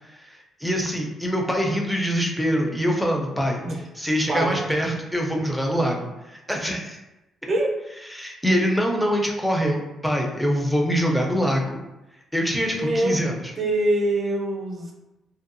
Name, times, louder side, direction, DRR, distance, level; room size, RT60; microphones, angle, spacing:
voice 1, 0.6-3.6 4.0-7.0 8.1-11.8 12.3-13.5, equal, ahead, 0 dB, 0.5 m, -24 dB
voice 2, 4.3-4.6 5.3-5.4 7.5-7.8 12.7-13.2 13.6-14.9, right 1 dB, 45° right, 0 dB, 0.6 m, -24 dB
2.7 x 2.3 x 2.5 m, 0.97 s
cardioid pair, 90°, 0 cm